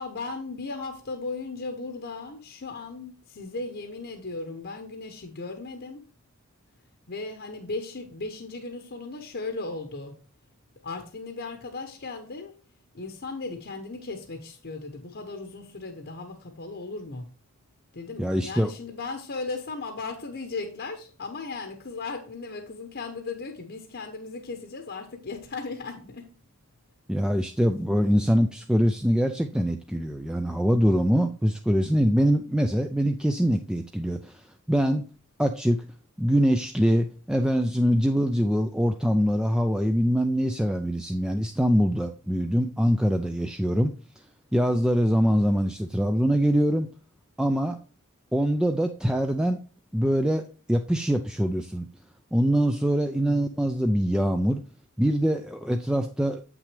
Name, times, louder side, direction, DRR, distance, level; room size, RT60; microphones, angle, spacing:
voice 1, 0.0-6.1 7.1-10.2 10.8-12.5 12.9-17.3 17.9-26.3 53.1-53.5, left 3 dB, 50° left, 0.9 m, -36 dB
voice 2, 18.2-18.7 27.1-34.4 34.7-35.1 35.4-35.9 36.2-43.9 44.5-46.9 47.4-47.8 48.3-49.6 49.9-51.9 52.3-54.6 55.0-56.4, equal, 5° right, 0.4 m, -23 dB
7.8 x 6.0 x 3.3 m
head